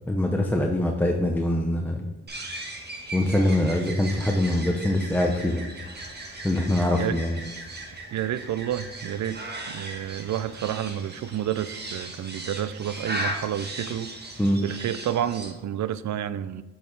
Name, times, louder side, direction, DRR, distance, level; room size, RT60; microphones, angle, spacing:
voice 1, 0.1-2.1 3.1-5.6 6.4-7.4 14.4-14.6, left 1 dB, 5° left, 2 dB, 0.6 m, -23 dB
sound 1, 2.3-15.5, right 1 dB, 30° right, 1.3 m, -37 dB
voice 2, 8.1-14.1 14.6-16.6, right 10 dB, 60° right, 15 dB, 0.5 m, -30 dB
7.3 x 4.7 x 4.0 m, 1.2 s
cardioid pair, 75°, 32 cm